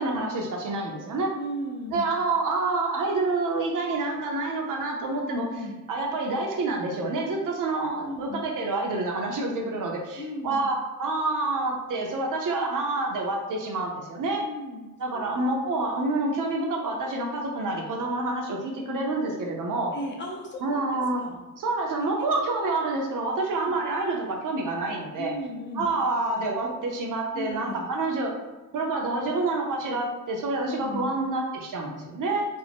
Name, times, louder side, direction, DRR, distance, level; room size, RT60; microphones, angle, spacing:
voice 1, 0.0-1.3 1.9-5.5 5.9-14.4 15.0-20.0 20.6-21.2 21.6-25.3 25.8-28.3 28.7-32.5, right 2 dB, 65° right, 0 dB, 0.6 m, -28 dB
voice 2, 1.4-2.1 5.5-5.7 8.0-8.4 10.2-10.7 14.4-14.8 15.1-15.4 19.9-20.8 21.2-21.4 22.3-22.5 23.6-23.8 25.2-25.9 27.3-27.9 30.6-31.1, left 1 dB, 30° left, -1 dB, 0.5 m, -36 dB
2.5 x 2.0 x 3.4 m, 1.2 s
wide cardioid pair, 135°, 35 cm